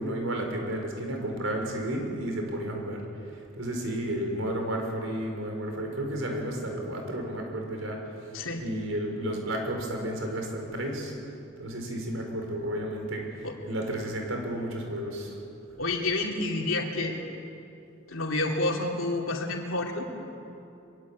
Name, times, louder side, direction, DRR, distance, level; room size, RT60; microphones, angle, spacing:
voice 1, 0.0-8.1 8.6-11.2 11.6-15.4, right 1 dB, 75° right, 2 dB, 5.4 m, -32 dB
voice 2, 15.8-17.2 18.1-20.3, left 2 dB, 80° left, 1 dB, 3.2 m, -29 dB
24.0 x 23.0 x 8.6 m, 2.8 s
head